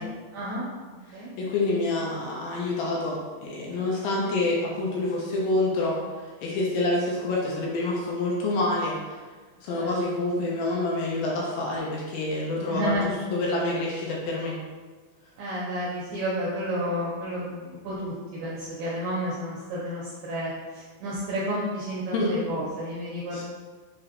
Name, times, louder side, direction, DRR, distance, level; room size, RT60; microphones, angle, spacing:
voice 1, 0.0-1.3 9.7-9.9 12.7-13.1 15.4-23.4, equal, 85° right, -6 dB, 1.8 m, -31 dB
voice 2, 1.4-6.0 6.4-9.2 9.6-14.6 22.1-22.4 23.3-23.4, left 2 dB, 75° left, -3 dB, 2.3 m, -27 dB
6.7 x 2.6 x 2.9 m, 1.4 s
omnidirectional pair, 4.4 m